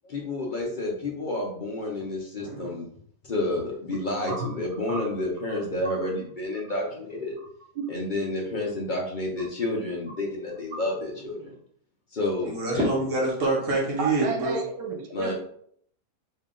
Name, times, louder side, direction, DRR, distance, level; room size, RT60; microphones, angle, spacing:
voice 1, 0.0-2.9 3.2-7.3 7.9-11.4 12.1-12.9 15.1-15.3, left 2 dB, 55° left, -2 dB, 0.5 m, -30 dB
voice 2, 2.4-2.7 4.3-4.5 4.9-5.1 5.8-6.0 7.4-7.5 7.7-7.8 11.4-11.6 14.0-15.3, right 4 dB, 85° right, 2 dB, 1.3 m, -32 dB
voice 3, 12.5-14.6, right 2 dB, 55° right, -3 dB, 1.2 m, -25 dB
3.2 x 2.7 x 3.7 m, 0.65 s
omnidirectional pair, 1.8 m